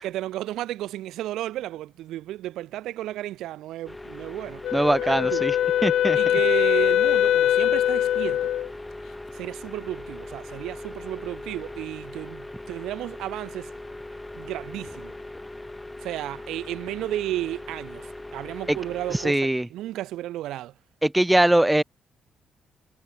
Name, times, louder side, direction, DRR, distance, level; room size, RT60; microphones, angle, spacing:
voice 1, 0.0-4.6 5.0-5.5 6.1-8.5 9.3-13.7 14.4-15.1 16.0-20.7, right 14 dB, 85° right, 6.3 m, -33 dB
sound 1, 3.8-19.3, left 2 dB, 10° left, 2.5 m, -40 dB
Wind instrument woodwind instrument, 4.6-8.7, left 11 dB, 75° left, 0.4 m, -22 dB
voice 2, 4.7-5.5 5.8-6.2 19.2-19.7 21.0-21.8, right 1 dB, 10° right, 1.2 m, -21 dB
cardioid pair, 90°, 0 cm